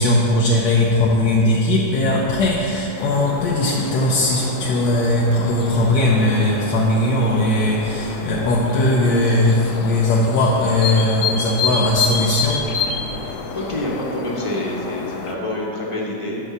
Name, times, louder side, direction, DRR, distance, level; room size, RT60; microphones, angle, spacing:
voice 1, 0.0-12.7, left 1 dB, 90° left, -3 dB, 1.4 m, -19 dB
sound 1, 3.0-15.3, left 5 dB, 65° left, 0.8 m, -29 dB
voice 2, 13.5-16.4, left 1 dB, 20° left, -3 dB, 0.9 m, -26 dB
6.3 x 5.3 x 6.8 m, 2.8 s
omnidirectional pair, 1.8 m